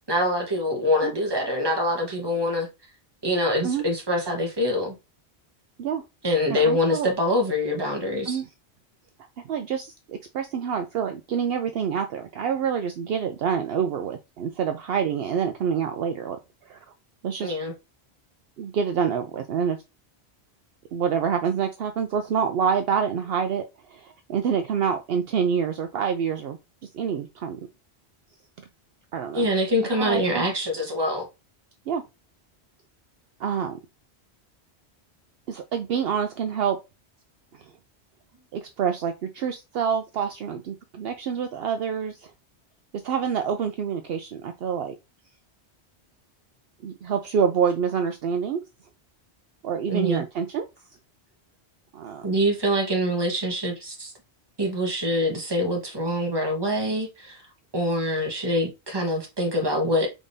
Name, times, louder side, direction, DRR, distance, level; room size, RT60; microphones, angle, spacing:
voice 1, 0.1-2.7 3.2-4.9 6.2-8.4 17.4-17.7 29.3-31.3 49.9-50.2 52.2-54.1 54.6-57.4 57.7-60.1, left 1 dB, 25° right, 1.2 m, -25 dB
voice 2, 6.5-7.1 8.3-8.5 9.4-16.4 16.7-16.8 17.2-17.5 18.6-19.8 20.9-26.6 26.9-27.6 29.1-29.5 30.0-30.4 31.9-32.0 33.4-33.8 35.5-36.8 37.6-37.7 38.5-42.3 42.9-44.9 46.8-48.6 49.6-50.7 51.9-52.3, right 7 dB, 65° right, 0.7 m, -27 dB
4.9 x 3.6 x 2.7 m
omnidirectional pair, 1.1 m